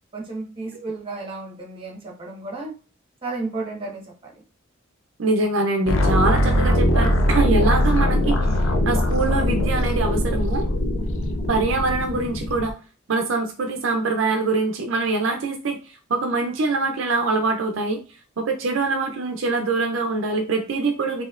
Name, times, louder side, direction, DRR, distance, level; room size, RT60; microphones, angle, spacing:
voice 1, 0.1-2.7 3.2-4.0, right 3 dB, 25° right, -1 dB, 1.1 m, -32 dB
voice 2, 5.2-8.4 8.8-10.6 11.5-12.7 13.1-18.0 18.4-21.2, right 3 dB, 70° right, 4 dB, 0.5 m, -24 dB
sound 1, 5.9-12.7, left 1 dB, 85° left, 0.5 m, -21 dB
4.2 x 2.7 x 2.4 m, 0.36 s
head